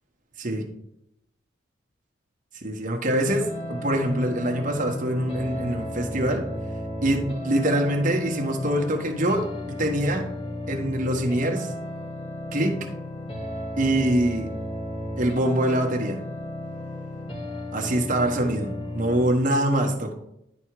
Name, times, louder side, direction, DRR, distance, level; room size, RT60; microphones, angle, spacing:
voice 1, 2.5-6.4 7.0-10.3 10.7-11.7 12.5-12.8 13.8-14.5 15.2-16.2 17.7-20.1, right 1 dB, 40° right, 2 dB, 1.1 m, -24 dB
sound 1, 3.3-19.3, left 1 dB, 25° left, 1.1 m, -34 dB
10.5 x 3.5 x 4.7 m, 0.81 s
head